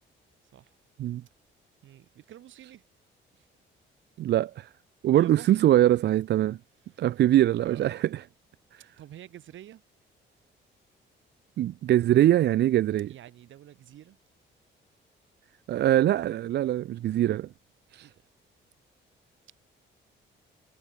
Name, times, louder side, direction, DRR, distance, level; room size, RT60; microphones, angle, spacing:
voice 1, 1.8-2.9 3.3-3.5 5.1-5.7 5.9-6.0 6.8-7.2 7.6-8.0 9.0-9.8 13.1-14.2 18.0-18.3, right 12 dB, 75° right, 5.2 m, -48 dB
voice 2, 4.2-4.7 5.0-6.6 7.0-8.0 11.6-13.1 15.7-17.5 17.9-18.1, right 13 dB, 60° right, 0.5 m, -23 dB
cardioid pair, 90°, 20 cm